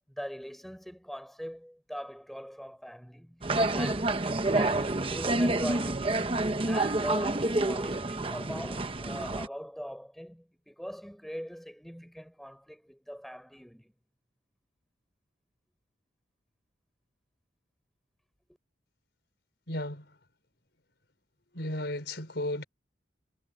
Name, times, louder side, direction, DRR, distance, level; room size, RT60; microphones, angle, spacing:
voice 1, 0.1-3.4 3.7-4.2 4.5-6.3 6.7-13.9, equal, ahead, 5.8 m, -41 dB
sound 1, 3.4-9.5, right 2 dB, 30° right, 1.0 m, -28 dB
voice 2, 19.7-20.0 21.5-22.6, left 1 dB, 65° left, 5.6 m, -34 dB
head